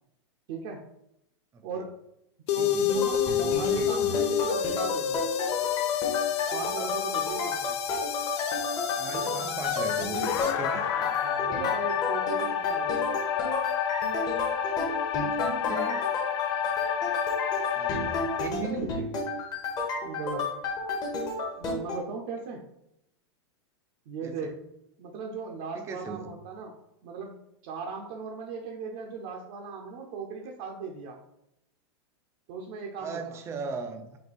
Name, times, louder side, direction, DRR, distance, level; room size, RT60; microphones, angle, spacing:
voice 1, 0.5-0.8 1.6-2.0 2.5-5.3 6.5-7.8 9.1-9.5 11.0-13.1 15.7-15.8 18.8-19.1 20.0-20.6 21.6-22.7 24.1-24.7 25.0-26.7 27.0-27.3 27.6-31.2 32.5-33.4, right 4 dB, 55° right, 0 dB, 0.7 m, -38 dB
sound 1, 2.5-18.5, left 9 dB, 65° left, 0.4 m, -29 dB
voice 2, 2.6-2.9 9.0-10.9 15.1-16.0 17.7-18.8 24.2-24.5 25.8-26.3 33.0-34.2, right 4 dB, 20° right, 5 dB, 0.4 m, -38 dB
sound 2, 2.9-22.0, left 2 dB, 25° left, 0.9 m, -32 dB
4.3 x 2.2 x 4.2 m, 0.81 s
hypercardioid pair, 135°, 15 cm